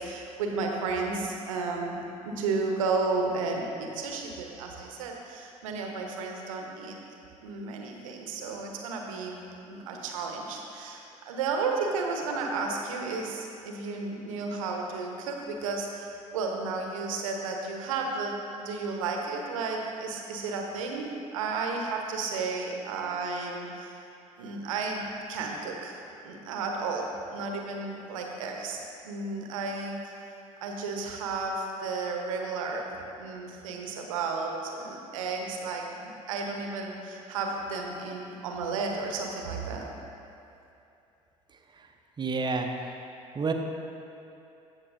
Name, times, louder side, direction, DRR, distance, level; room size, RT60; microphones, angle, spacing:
voice 1, 0.0-7.0 7.4-24.0 24.4-26.0 26.2-28.8 29.0-30.1 30.6-32.9 33.2-39.8, right 4 dB, 70° right, 1 dB, 1.0 m, -33 dB
voice 2, 42.2-42.8 43.3-43.5, right 4 dB, 25° right, 4 dB, 0.8 m, -29 dB
15.5 x 6.1 x 2.6 m, 2.8 s
figure-of-eight pair, 55°, 18 cm